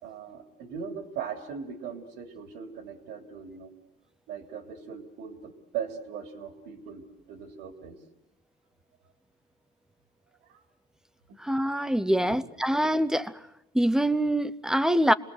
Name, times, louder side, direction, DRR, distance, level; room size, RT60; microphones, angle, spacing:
voice 1, 0.0-3.7 4.3-8.0 10.5-10.6 11.3-11.4 12.1-12.4, right 7 dB, 85° right, 3.3 m, -39 dB
voice 2, 11.4-13.3 13.7-15.1, right 1 dB, 5° right, 0.9 m, -24 dB
28.5 x 20.0 x 8.1 m
cardioid pair, 110°, 17 cm